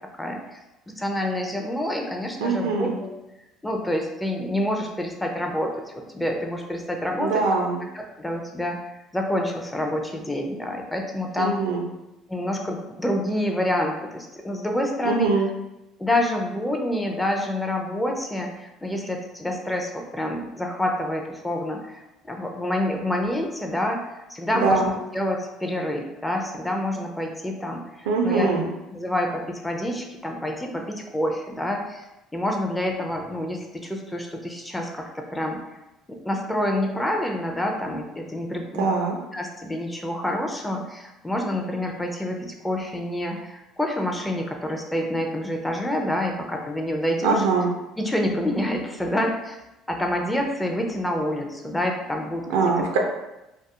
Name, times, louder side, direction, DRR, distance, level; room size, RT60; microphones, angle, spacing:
voice 1, 0.2-0.6 1.0-3.1 3.6-5.8 6.1-7.4 7.9-11.6 12.3-15.3 16.0-28.5 28.9-32.1 32.3-35.6 36.1-38.9 39.3-47.4 48.0-49.6 49.9-52.9, left 1 dB, 10° left, 2 dB, 0.5 m, -27 dB
voice 2, 2.4-3.0 7.2-7.8 11.4-11.9 15.0-15.5 24.5-24.9 28.1-28.7 38.7-39.2 47.2-47.7 52.5-53.0, right 4 dB, 80° right, 2 dB, 0.4 m, -22 dB
2.2 x 2.0 x 2.8 m, 0.97 s
hypercardioid pair, 65°, 0 cm